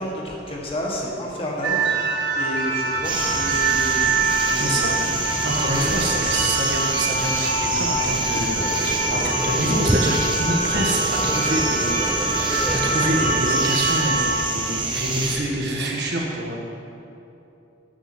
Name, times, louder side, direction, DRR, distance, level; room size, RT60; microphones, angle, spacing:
voice 1, 0.0-5.0 5.8-6.6, left 1 dB, 30° left, -3 dB, 1.5 m, -31 dB
sound 1, 1.6-14.4, right 3 dB, 80° right, 1.9 m, -25 dB
sound 2, 3.0-15.4, right 3 dB, 25° right, 1.1 m, -27 dB
voice 2, 4.6-5.0 5.4-8.6 8.8-16.6, right 1 dB, 65° right, -1 dB, 1.6 m, -27 dB
sound 3, 8.6-13.7, right 1 dB, 5° right, 0.3 m, -29 dB
9.2 x 7.5 x 6.1 m, 2.8 s
head